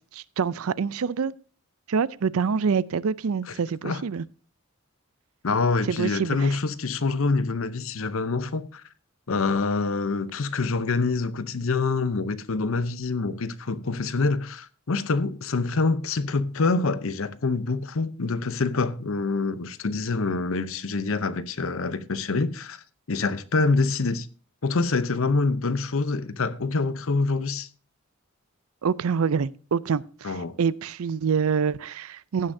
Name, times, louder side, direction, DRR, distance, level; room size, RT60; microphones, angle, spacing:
voice 1, 0.1-1.3 1.9-4.2 5.9-6.6 28.8-32.5, right 6 dB, 80° right, 0.5 m, -26 dB
voice 2, 5.4-8.8 9.3-24.3 24.6-27.7 30.2-30.6, left 3 dB, 70° left, 0.7 m, -26 dB
15.5 x 9.9 x 2.7 m
head